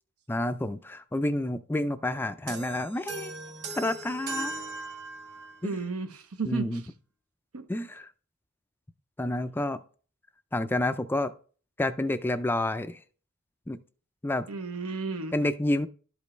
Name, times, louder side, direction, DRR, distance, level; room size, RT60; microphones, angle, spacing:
voice 1, 0.3-3.3 3.7-4.5 5.6-5.7 6.5-6.8 7.7-8.1 9.2-9.8 10.5-11.3 11.8-13.0 13.7-13.8 14.2-14.5 15.3-15.9, left 1 dB, 10° left, 0.3 m, -29 dB
sound 1, 2.5-5.7, right 3 dB, 50° right, 1.8 m, -38 dB
voice 2, 5.6-6.8 7.5-7.7 14.5-15.4, right 4 dB, 80° right, 0.9 m, -33 dB
12.0 x 5.1 x 3.2 m
head